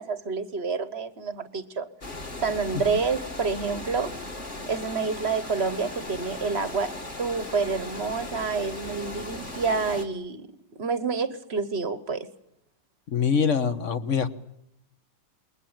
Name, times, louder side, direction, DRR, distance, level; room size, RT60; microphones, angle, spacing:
voice 1, 0.0-1.9 2.4-4.1 4.7-10.5 10.8-12.3, right 4 dB, 40° right, 13 dB, 1.3 m, -28 dB
Water, 2.0-10.1, left 2 dB, 25° left, 2.4 m, -37 dB
voice 2, 13.1-14.3, left 6 dB, 45° left, 11 dB, 1.5 m, -24 dB
28.5 x 21.5 x 9.1 m, 0.80 s
omnidirectional pair, 2.1 m